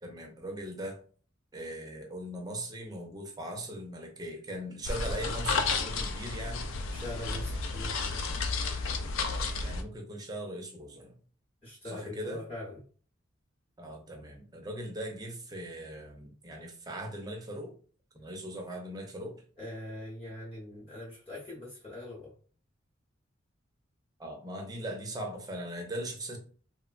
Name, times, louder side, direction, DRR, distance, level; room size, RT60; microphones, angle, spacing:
voice 1, 0.0-1.0 1.5-6.7 9.3-11.2 11.8-12.4 13.8-17.7 18.1-19.4 24.2-26.4, right 1 dB, 20° right, 2 dB, 0.5 m, -40 dB
sound 1, 4.8-9.8, left 4 dB, 80° left, 0.4 m, -32 dB
voice 2, 6.9-8.2 11.6-12.8 19.6-22.3, left 1 dB, 30° left, -5 dB, 0.8 m, -42 dB
3.0 x 2.1 x 2.4 m, 0.43 s
head